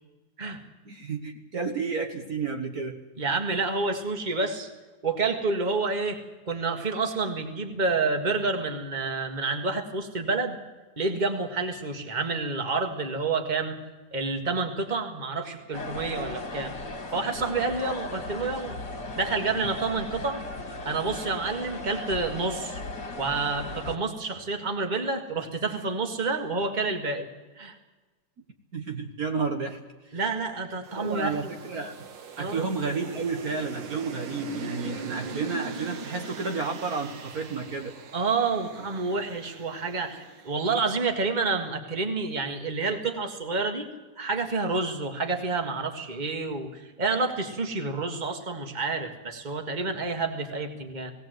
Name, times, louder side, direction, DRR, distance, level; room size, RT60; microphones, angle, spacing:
voice 1, 0.8-3.0 28.7-29.8 30.0-30.2 30.9-32.1 32.4-37.9, right 4 dB, 55° right, 4 dB, 1.8 m, -31 dB
voice 2, 3.2-4.7 5.0-6.2 6.5-10.6 11.0-13.8 14.1-16.7 17.1-18.8 19.2-20.4 20.8-22.8 23.2-27.3 27.6-27.8 30.1-31.5 32.4-32.7 38.1-43.9 44.2-51.1, right 3 dB, 25° right, 5 dB, 1.8 m, -29 dB
sound 1, 15.7-24.0, left 2 dB, 70° left, 2.4 m, -37 dB
sound 2, 30.8-41.2, right 4 dB, 85° right, 2.0 m, -41 dB
19.0 x 17.5 x 7.9 m, 1.2 s
omnidirectional pair, 2.0 m